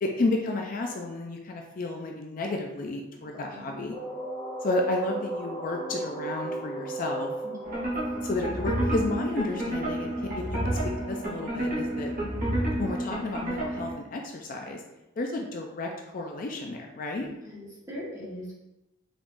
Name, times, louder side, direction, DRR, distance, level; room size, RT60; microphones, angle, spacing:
voice 1, 0.0-4.0 4.6-7.3 8.2-10.6 10.8-12.1 12.8-14.8 15.2-17.3, left 2 dB, 40° left, 2 dB, 0.4 m, -32 dB
voice 2, 3.3-3.8 7.4-7.5 17.2-18.5, left 1 dB, 15° right, -8 dB, 1.5 m, -41 dB
sound 1, 3.9-9.6, right 2 dB, 25° left, 0.9 m, -36 dB
sound 2, 7.6-13.9, right 1 dB, 40° right, 1.2 m, -30 dB
4.9 x 3.5 x 2.6 m, 0.96 s
head